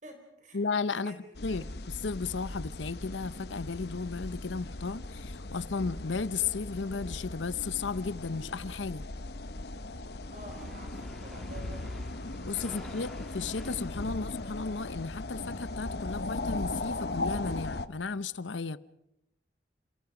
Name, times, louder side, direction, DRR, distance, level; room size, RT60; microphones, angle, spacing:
voice 1, 0.0-0.6 0.9-1.7 10.3-12.2 12.7-13.0, right 1 dB, 40° right, 4.2 m, -49 dB
voice 2, 0.5-1.2 1.4-9.1 12.4-18.8, left 4 dB, 90° left, 0.8 m, -34 dB
sound 1, 1.3-17.9, left 2 dB, 60° left, 1.0 m, -38 dB
sound 2, 10.0-15.6, equal, ahead, 3.1 m, -53 dB
29.0 x 28.5 x 5.0 m
head